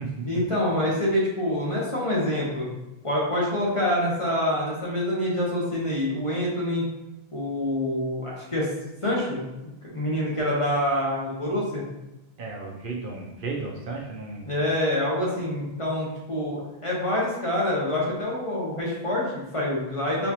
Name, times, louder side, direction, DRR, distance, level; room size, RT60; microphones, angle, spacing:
voice 1, 0.2-2.7 3.0-6.8 7.3-8.7 9.0-9.4 9.9-11.8 14.5-20.3, left 1 dB, 35° left, -5 dB, 0.8 m, -26 dB
voice 2, 12.4-14.5, right 3 dB, 60° right, -1 dB, 0.7 m, -34 dB
4.1 x 2.4 x 2.8 m, 0.98 s
omnidirectional pair, 1.0 m